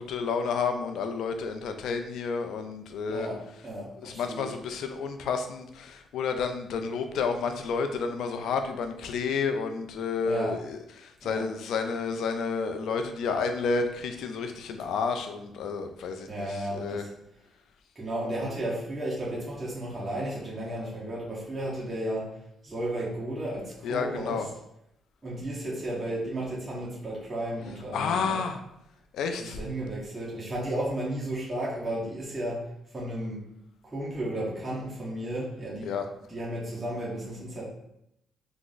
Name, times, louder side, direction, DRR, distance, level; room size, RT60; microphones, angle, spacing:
voice 1, 0.0-3.3 4.0-17.0 23.8-24.5 27.9-28.6 29.1-29.6 35.8-36.0, left 5 dB, 75° left, 6 dB, 0.4 m, -30 dB
voice 2, 3.1-4.5 10.2-10.6 11.2-11.5 16.3-17.1 17.9-22.4 22.6-24.5 25.2-28.4 29.4-32.7 32.9-33.4 33.8-36.0 36.3-37.6, right 1 dB, 20° right, -7 dB, 1.2 m, -33 dB
3.5 x 2.0 x 3.8 m, 0.80 s
cardioid pair, 90°, 0 cm